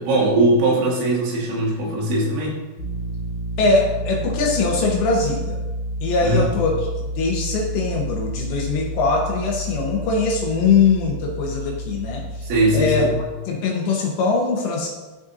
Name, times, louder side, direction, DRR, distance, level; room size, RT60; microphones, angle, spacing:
voice 1, 0.0-2.6 6.2-6.5 12.4-13.2, right 1 dB, 70° right, -4 dB, 4.0 m, -20 dB
sound 1, 2.8-13.2, right 1 dB, 45° left, 2.6 m, -30 dB
voice 2, 3.6-5.6 6.0-6.9 7.2-13.1 13.5-14.9, left 4 dB, 75° left, 0 dB, 3.0 m, -21 dB
14.5 x 5.2 x 2.7 m, 1.2 s
omnidirectional pair, 5.6 m